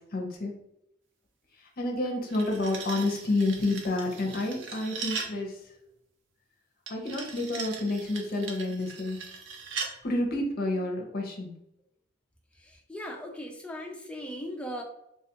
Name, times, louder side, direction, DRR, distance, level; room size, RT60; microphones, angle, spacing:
voice 1, 0.1-0.5 1.8-5.5 6.9-9.2 10.0-11.5, left 2 dB, 50° left, 1 dB, 0.7 m, -29 dB
sound 1, 2.0-5.4 6.9-10.0, right 5 dB, 70° right, 0.5 m, -39 dB
voice 2, 12.6-14.8, equal, 5° left, 1 dB, 0.4 m, -38 dB
3.4 x 2.4 x 2.8 m, 0.79 s
head